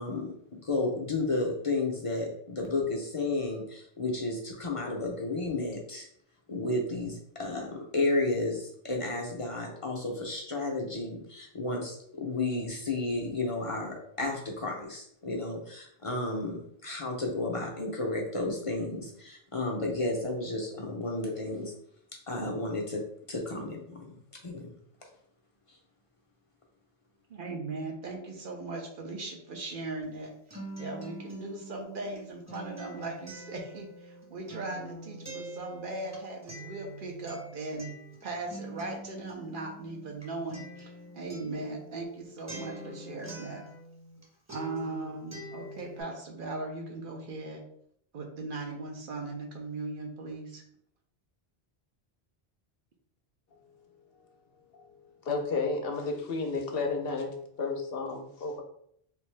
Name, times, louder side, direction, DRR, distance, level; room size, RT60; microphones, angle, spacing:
voice 1, 0.0-6.1 6.5-21.7 22.3-23.0 23.3-24.2 24.4-24.7 25.7-25.8, left 2 dB, 40° left, -1 dB, 0.6 m, -32 dB
voice 2, 27.3-30.3 30.8-37.9 38.2-43.6 44.5-47.6 48.1-50.6, right 2 dB, 60° right, 1 dB, 0.8 m, -38 dB
Acoustic guitar, 30.0-44.2 44.5-46.0, right 1 dB, 15° right, 0.8 m, -45 dB
voice 3, 55.2-58.6, left 3 dB, 70° left, 3 dB, 0.8 m, -32 dB
3.3 x 2.6 x 3.2 m, 0.68 s
omnidirectional pair, 1.1 m